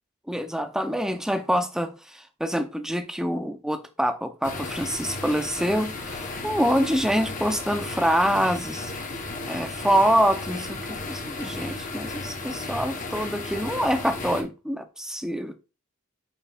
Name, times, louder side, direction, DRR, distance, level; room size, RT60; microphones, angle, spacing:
voice 1, 0.3-8.9 9.5-15.6, equal, 5° right, 0.5 m, -26 dB
sound 1, 4.4-14.4, left 3 dB, 35° left, 1.0 m, -34 dB
8.8 x 4.6 x 2.3 m
head